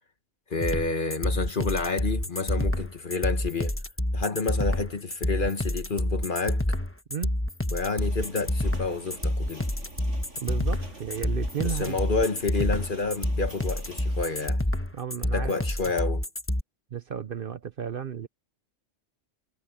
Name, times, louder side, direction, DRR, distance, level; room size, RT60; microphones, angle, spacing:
voice 1, 0.5-3.8 4.1-6.6 7.7-9.7 11.6-14.6 15.3-16.2, left 3 dB, 45° left, 1.6 m, -29 dB
sound 1, 0.6-16.6, left 1 dB, 10° left, 1.2 m, -28 dB
sound 2, 8.0-14.5, right 1 dB, 75° right, 8.2 m, -46 dB
voice 2, 10.4-12.0 14.9-15.5 16.9-18.3, right 8 dB, 50° right, 0.9 m, -33 dB
omnidirectional pair, 1.3 m